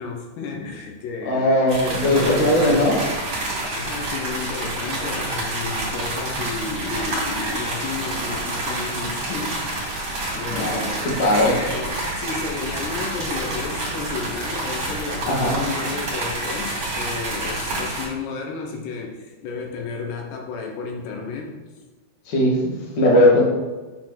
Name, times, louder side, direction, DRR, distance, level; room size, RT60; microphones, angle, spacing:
voice 1, 0.0-1.5 1.8-2.9 3.7-10.1 10.3-11.0 11.4-21.6, left 4 dB, 80° left, 1 dB, 3.1 m, -32 dB
voice 2, 1.2-3.0 10.5-11.6 15.2-15.6 22.2-23.4, left 1 dB, 35° left, -5 dB, 1.6 m, -19 dB
sound 1, 1.7-18.1, right 2 dB, 40° right, 3.4 m, -28 dB
8.1 x 4.5 x 6.0 m, 1.3 s
omnidirectional pair, 4.9 m